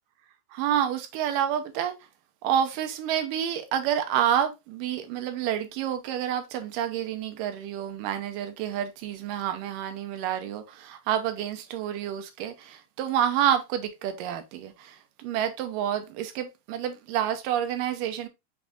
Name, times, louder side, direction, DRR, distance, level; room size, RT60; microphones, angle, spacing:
voice 1, 0.5-1.9 2.4-18.3, right 10 dB, 80° right, 2.4 m, -28 dB
6.1 x 3.5 x 2.5 m
omnidirectional pair, 3.9 m